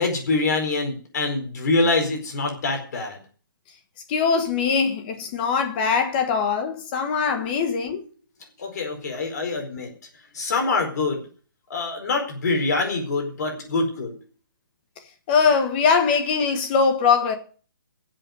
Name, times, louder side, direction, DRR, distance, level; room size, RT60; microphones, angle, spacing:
voice 1, 0.0-3.2 8.6-9.9 10.3-11.2 11.7-14.2, left 3 dB, 50° left, 4.5 m, -25 dB
voice 2, 4.1-8.0 15.3-17.3, left 5 dB, 25° left, 1.4 m, -21 dB
13.0 x 7.7 x 9.1 m
hypercardioid pair, 165°, 11 cm